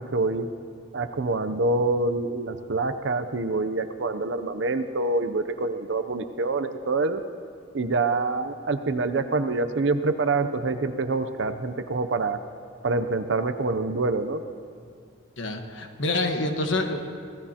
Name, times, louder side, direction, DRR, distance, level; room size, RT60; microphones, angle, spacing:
voice 1, 0.1-0.5 0.9-7.2 7.7-12.4 12.8-14.4, right 3 dB, 65° right, 9 dB, 0.6 m, -26 dB
voice 2, 15.4-17.1, left 2 dB, 70° left, 5 dB, 1.3 m, -27 dB
26.0 x 16.5 x 2.9 m, 2.2 s
head